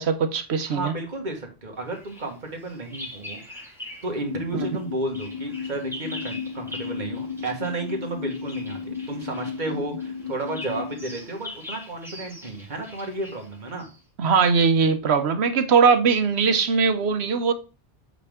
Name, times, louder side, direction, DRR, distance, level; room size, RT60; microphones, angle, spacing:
voice 1, 0.0-0.9 4.5-4.7 14.2-17.5, right 5 dB, 90° right, 1.1 m, -20 dB
voice 2, 0.7-3.7 4.0-13.9, right 2 dB, 45° right, 1.7 m, -32 dB
Bird vocalization bird call bird song, 1.9-4.2 4.5-14.0, left 1 dB, ahead, 2.0 m, -42 dB
sound 1, 4.3-11.1, left 6 dB, 45° left, 0.7 m, -34 dB
8.4 x 5.2 x 3.5 m
omnidirectional pair, 1.1 m